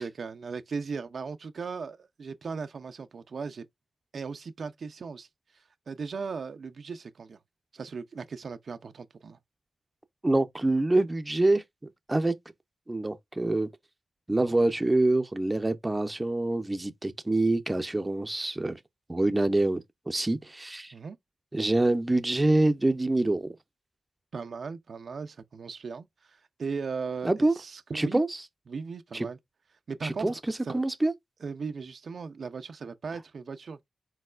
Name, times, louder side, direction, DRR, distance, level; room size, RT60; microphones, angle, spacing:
voice 1, 0.0-3.7 4.1-7.4 7.7-9.4 20.9-21.2 24.3-28.2 28.7-29.4 29.9-30.8 31.4-33.9, right 5 dB, 60° right, 0.5 m, -38 dB
voice 2, 10.2-11.6 12.1-12.3 12.9-13.7 14.3-18.8 19.1-20.9 21.5-23.5 27.2-27.5 27.9-28.4 29.1-29.3 30.0-30.3 30.7-31.1, right 2 dB, 15° right, 0.6 m, -25 dB
4.4 x 4.0 x 2.4 m
cardioid pair, 80°, 0 cm